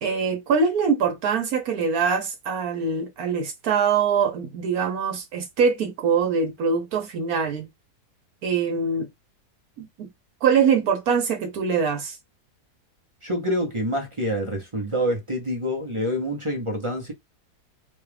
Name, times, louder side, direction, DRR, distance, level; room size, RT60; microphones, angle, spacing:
voice 1, 0.0-7.7 8.4-9.1 9.8-10.1 10.4-12.2, right 6 dB, 70° right, 1.3 m, -23 dB
voice 2, 13.2-17.1, equal, 30° right, 0.6 m, -26 dB
3.9 x 2.4 x 3.3 m
omnidirectional pair, 1.7 m